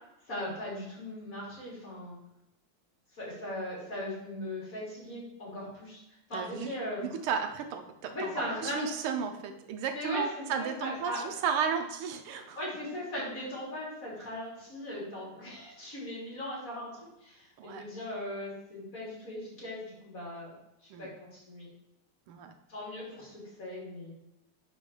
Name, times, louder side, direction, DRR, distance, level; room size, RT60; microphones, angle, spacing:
voice 1, 0.3-2.2 3.1-6.0 6.3-7.1 8.1-9.2 9.9-11.3 12.3-20.5 21.0-21.7 22.7-24.1, left 1 dB, 40° left, -7 dB, 3.4 m, -39 dB
voice 2, 6.3-6.7 7.0-12.6 17.6-17.8 20.9-21.1 22.3-22.5, right 6 dB, 85° right, 6 dB, 1.6 m, -34 dB
10.5 x 4.2 x 3.2 m, 0.88 s
omnidirectional pair, 2.4 m